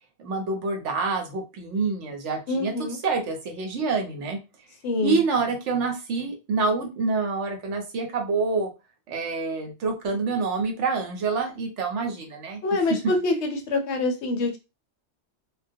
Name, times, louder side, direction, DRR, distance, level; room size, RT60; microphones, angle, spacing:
voice 1, 0.2-4.4 5.0-8.7 9.1-12.6, right 4 dB, 75° right, 4 dB, 1.0 m, -27 dB
voice 2, 2.5-3.0 4.8-5.2 12.6-14.6, left 2 dB, 70° left, 5 dB, 0.8 m, -25 dB
2.2 x 2.2 x 2.6 m, 0.27 s
omnidirectional pair, 1.3 m